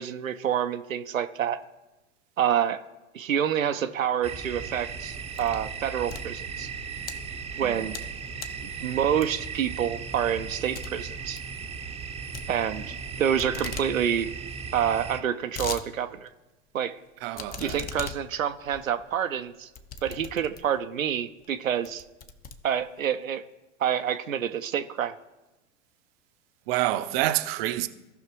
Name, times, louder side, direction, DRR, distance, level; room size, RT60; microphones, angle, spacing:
voice 1, 0.0-1.6 2.4-2.8 3.1-6.7 7.6-7.9 8.6-11.4 12.5-14.3 14.7-16.3 16.7-17.0 17.6-19.7 20.0-22.0 22.6-23.4 23.8-25.2, right 9 dB, 90° right, 0.6 m, -27 dB
sound 1, 4.2-15.2, right 6 dB, 15° right, 0.7 m, -37 dB
sound 2, 4.8-5.7 6.0-7.1 7.6-8.1 8.4-8.7 9.2-9.6 10.0-10.1 10.4-10.5 10.7-10.9 11.2-11.5 12.3-13.1 13.4-13.9 14.2-14.3 14.5-14.6 15.1-15.8 16.3-16.4 17.3-20.8 21.4-21.5 21.8-23.1, left 6 dB, 25° left, 0.7 m, -39 dB
voice 2, 17.2-17.8 26.7-27.9, right 15 dB, 50° right, 0.6 m, -28 dB
16.5 x 5.6 x 3.0 m
hypercardioid pair, 95°, 39 cm